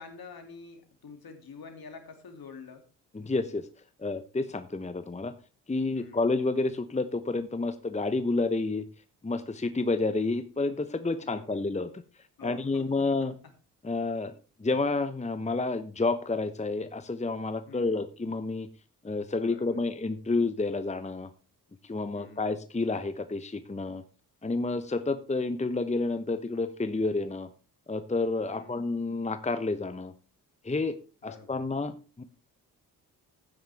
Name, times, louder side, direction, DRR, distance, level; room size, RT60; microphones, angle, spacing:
voice 1, 0.0-2.9 5.9-6.3 11.1-11.6 12.4-13.5 17.7-18.0 19.4-19.8 22.1-22.5 28.5-28.8 31.2-31.7, left 5 dB, 60° left, 6 dB, 2.7 m, -48 dB
voice 2, 3.1-3.7 4.0-5.3 5.7-8.8 9.2-11.9 12.4-13.3 13.8-14.3 14.6-18.7 19.0-21.3 21.8-24.0 24.4-27.5 27.9-30.1 30.6-31.0 31.2-32.2, left 3 dB, 15° left, 11 dB, 1.0 m, -30 dB
13.0 x 9.4 x 3.5 m, 0.34 s
supercardioid pair, 45°, 42 cm